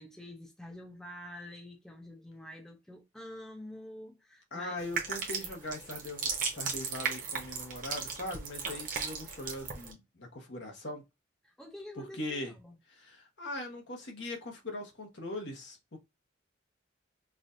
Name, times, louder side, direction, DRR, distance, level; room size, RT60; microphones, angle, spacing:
voice 1, 0.0-4.8 11.4-12.8, left 1 dB, 5° left, 0.5 m, -47 dB
voice 2, 4.5-11.0 12.1-12.5 12.9-16.0, left 1 dB, 70° left, 1.2 m, -40 dB
sound 1, 4.8-9.9, right 5 dB, 45° right, 0.8 m, -36 dB
4.8 x 2.4 x 2.6 m
head